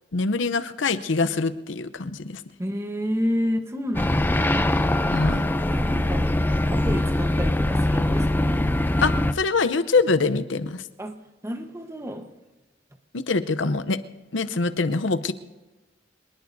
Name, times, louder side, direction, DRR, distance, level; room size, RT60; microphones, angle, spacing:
voice 1, 0.1-2.4 5.1-5.4 9.0-10.8 13.1-14.0 14.3-15.3, left 4 dB, 85° left, 13 dB, 0.7 m, -24 dB
voice 2, 2.6-4.8 5.4-6.3 6.7-8.6 11.0-11.2 11.4-12.3, equal, 15° right, 5 dB, 1.1 m, -30 dB
sound 1, 3.9-9.3, left 1 dB, 10° left, 0.5 m, -22 dB
24.5 x 20.0 x 2.7 m, 1.2 s
head